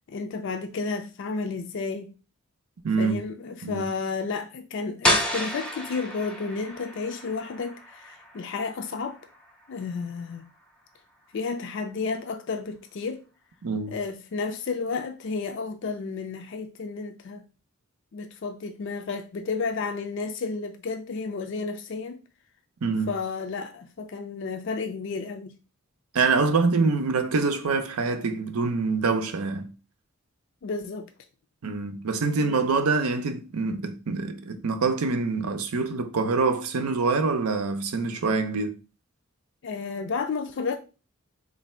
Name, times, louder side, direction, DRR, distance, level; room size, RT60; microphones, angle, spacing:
voice 1, 0.1-2.1 3.0-9.2 9.7-10.5 11.3-13.2 13.9-17.4 18.1-22.2 23.1-25.5 30.6-31.1 32.2-32.8 39.6-40.8, left 4 dB, 55° left, 0.4 m, -32 dB
voice 2, 2.8-3.2 3.6-3.9 13.6-14.0 22.8-23.1 26.1-29.7 31.6-38.7, right 4 dB, 85° right, 0.6 m, -25 dB
sound 1, 5.0-10.7, equal, 5° left, 0.5 m, -31 dB
3.3 x 2.6 x 4.2 m
head